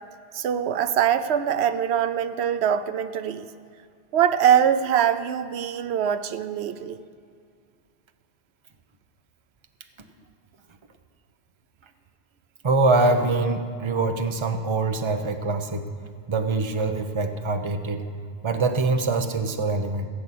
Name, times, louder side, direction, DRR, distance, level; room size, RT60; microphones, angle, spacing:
voice 1, 0.3-3.5 4.1-7.0, right 9 dB, 90° right, 12 dB, 0.9 m, -23 dB
voice 2, 12.6-15.9 16.3-18.0 18.4-20.1, right 3 dB, 30° right, 7 dB, 0.8 m, -24 dB
16.0 x 5.9 x 8.4 m, 2.3 s
omnidirectional pair, 1.1 m